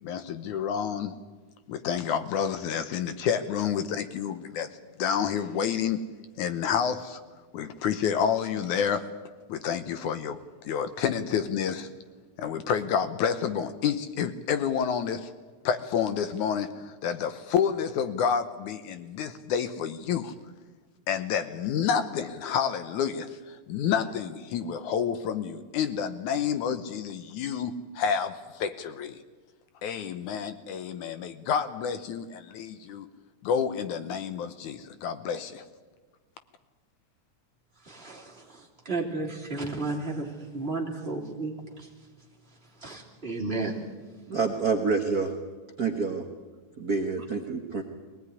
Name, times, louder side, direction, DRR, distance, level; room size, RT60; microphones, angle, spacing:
voice 1, 0.0-1.1 1.7-4.7 5.0-6.0 6.4-7.2 7.5-9.1 9.5-10.4 10.6-11.9 12.4-15.3 15.6-20.3 21.1-29.2 29.8-33.1 33.4-35.6, left 7 dB, 70° left, 11 dB, 2.2 m, -29 dB
voice 2, 37.8-41.9 42.8-43.8, right 3 dB, 20° right, -2 dB, 3.1 m, -33 dB
voice 3, 44.3-45.3 45.8-46.2 46.8-47.8, right 4 dB, 45° right, 4 dB, 1.2 m, -27 dB
22.5 x 19.0 x 9.7 m, 1.4 s
omnidirectional pair, 3.8 m